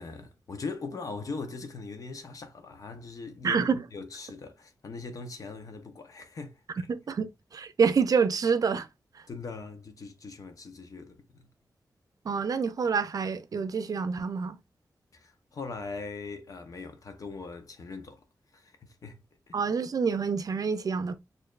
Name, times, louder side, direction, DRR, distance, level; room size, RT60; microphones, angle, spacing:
voice 1, 0.0-6.6 9.3-11.5 15.1-18.2 18.5-19.6, left 4 dB, 60° left, 0.8 m, -41 dB
voice 2, 3.4-3.9 6.9-8.9 9.1-9.2 12.2-14.6 19.5-21.2, right 5 dB, 65° right, 0.5 m, -27 dB
6.5 x 2.6 x 2.4 m
wide cardioid pair, 100°, 7 cm